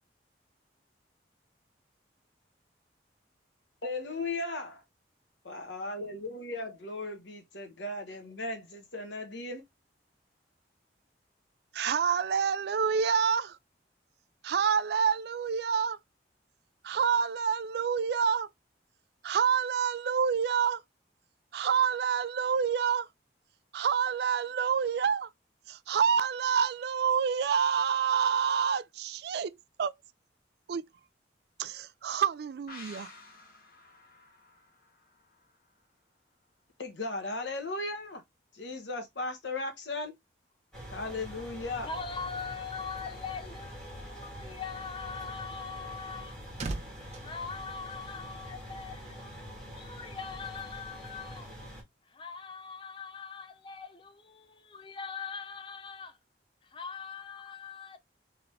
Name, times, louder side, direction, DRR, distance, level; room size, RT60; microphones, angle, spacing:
voice 1, 3.8-4.8 5.4-9.6 36.8-38.2 38.5-40.2 40.9-41.9, left 2 dB, 75° left, 1.2 m, -36 dB
voice 2, 11.7-13.6 14.4-16.0 16.8-18.5 19.2-20.8 21.5-23.1 23.7-25.3 25.7-29.5 29.8-29.9 30.7-30.8 31.6-33.1, right 7 dB, 60° right, 0.3 m, -27 dB
sound 1, 32.7-36.1 36.4-36.5, left 3 dB, 50° left, 1.1 m, -52 dB
sound 2, 40.7-51.8, equal, 5° left, 1.9 m, -45 dB
voice 3, 41.8-46.4 47.1-51.5 52.1-56.2 56.6-58.0, left 5 dB, 25° left, 0.5 m, -41 dB
sound 3, 46.1-48.5 48.8-49.1, right 2 dB, 40° right, 0.7 m, -41 dB
3.7 x 3.4 x 3.1 m
head